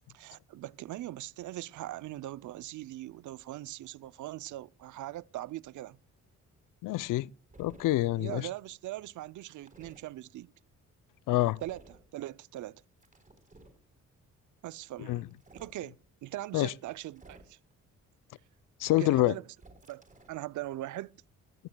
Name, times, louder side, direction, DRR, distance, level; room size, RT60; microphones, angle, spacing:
voice 1, 0.1-6.0 8.2-10.5 11.6-12.8 14.6-17.6 19.0-19.4 19.9-21.2, right 15 dB, 65° right, 0.5 m, -41 dB
voice 2, 6.8-7.3 7.6-8.4 11.3-11.6 15.1-15.2 16.5-16.7 18.8-19.3, left 17 dB, 75° left, 0.5 m, -26 dB
sound 1, 7.5-7.9 9.7-10.0 11.6-12.1 13.0-13.8 15.3-15.8 17.1-17.7 19.6-20.4, right 2 dB, 25° right, 3.8 m, -55 dB
21.5 x 14.0 x 2.2 m
supercardioid pair, 65°, 32 cm